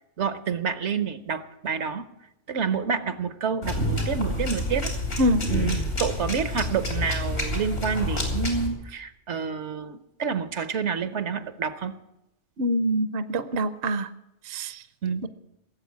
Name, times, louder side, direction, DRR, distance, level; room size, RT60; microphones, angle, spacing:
voice 1, 0.2-2.1 2.5-5.2 5.5-11.9 15.0-15.2, right 6 dB, 75° right, 11 dB, 1.2 m, -28 dB
sound 1, 3.6-8.7, left 1 dB, 90° left, 4.1 m, -28 dB
voice 2, 12.6-14.1 14.5-14.8 15.2-15.3, equal, 60° right, 11 dB, 0.8 m, -25 dB
17.5 x 7.7 x 8.4 m, 0.87 s
omnidirectional pair, 1.2 m